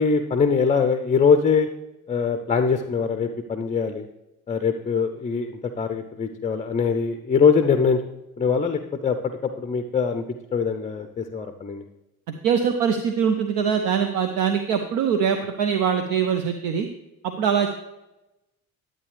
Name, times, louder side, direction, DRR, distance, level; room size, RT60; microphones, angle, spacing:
voice 1, 0.0-1.7 2.1-4.0 4.5-8.0 8.4-9.2 9.4-10.2 10.5-11.8, left 5 dB, 15° left, 8 dB, 0.6 m, -22 dB
voice 2, 12.4-16.9 17.2-17.7, right 7 dB, 55° right, 6 dB, 0.8 m, -23 dB
11.0 x 8.6 x 3.3 m, 0.95 s
figure-of-eight pair, 50°, 43 cm